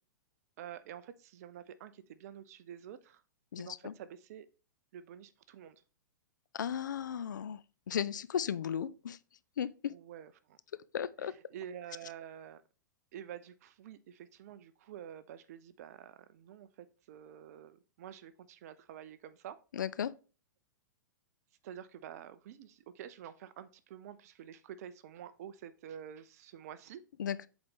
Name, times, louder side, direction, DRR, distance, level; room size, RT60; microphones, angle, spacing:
voice 1, 0.6-3.2 3.6-4.5 4.9-5.8 9.9-10.6 11.2-12.6 13.1-19.6 21.6-27.0, right 9 dB, 50° right, 0.5 m, -49 dB
voice 2, 3.5-3.9 6.5-7.6 7.9-9.2 9.6-9.9 10.9-11.3 19.7-20.1 27.2-27.5, left 8 dB, 70° left, 0.4 m, -35 dB
7.7 x 4.1 x 3.6 m
figure-of-eight pair, 105°, 10 cm